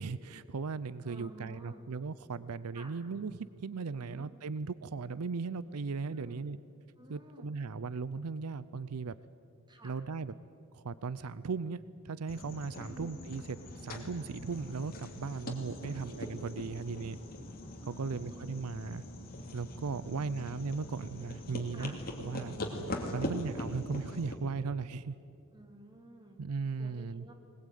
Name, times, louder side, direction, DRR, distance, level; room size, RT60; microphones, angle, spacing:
voice 1, 0.0-6.6 7.1-9.2 9.8-10.3 10.7-17.2 17.8-19.0 19.5-22.5 23.1-25.1 26.4-27.3, right 4 dB, 85° right, 17 dB, 0.5 m, -37 dB
voice 2, 1.0-1.8 2.7-2.9 4.0-4.3 6.0-6.4 7.0-7.5 9.7-10.0 12.8-13.2 15.7-16.1 17.8-18.6 20.0-20.8 21.7-21.9 22.9-23.3 25.5-26.4 26.8-27.3, equal, 20° right, 2 dB, 2.9 m, -52 dB
sound 1, 12.3-24.3, left 1 dB, 45° left, 2.7 m, -42 dB
21.0 x 20.0 x 9.3 m, 2.6 s
head